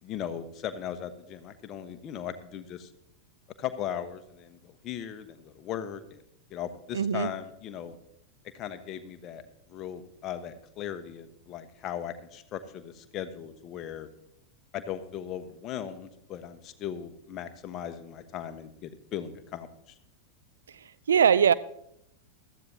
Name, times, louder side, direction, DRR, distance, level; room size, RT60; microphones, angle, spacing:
voice 1, 0.0-2.9 3.6-6.2 6.5-8.0 8.5-9.4 9.7-14.1 14.7-19.9, left 9 dB, 35° left, 1.1 m, -38 dB
voice 2, 6.9-7.3 21.1-21.5, right 8 dB, 65° right, 0.4 m, -21 dB
15.5 x 13.5 x 2.8 m
figure-of-eight pair, 90°, 0 cm